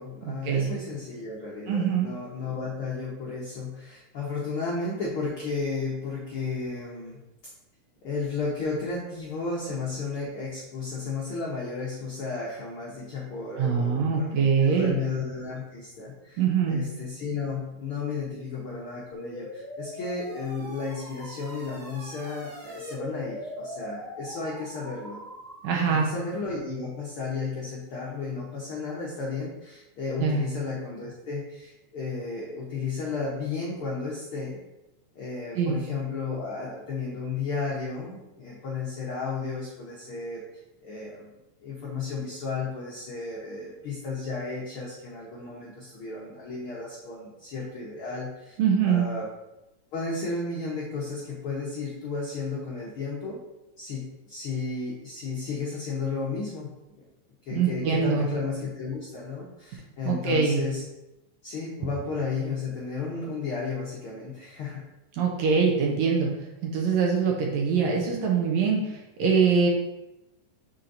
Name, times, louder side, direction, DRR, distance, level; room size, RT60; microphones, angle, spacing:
voice 1, 0.0-7.2 8.0-25.2 25.9-34.6 35.1-40.4 40.8-48.6 48.8-49.3 49.9-53.4 53.8-56.7 57.0-57.1 57.4-60.8 61.4-64.8, left 4 dB, 85° left, -4 dB, 1.2 m, -33 dB
voice 2, 1.7-2.1 13.6-15.0 16.4-16.8 25.6-26.1 30.2-30.4 35.6-35.7 48.6-49.1 57.5-58.3 60.1-60.6 65.2-66.3 66.6-68.8 69.2-69.7, right 6 dB, 75° right, -1 dB, 1.7 m, -23 dB
sound 1, 19.1-26.6, equal, 55° right, 0.9 m, -41 dB
9.0 x 4.4 x 2.6 m, 0.95 s
omnidirectional pair, 3.9 m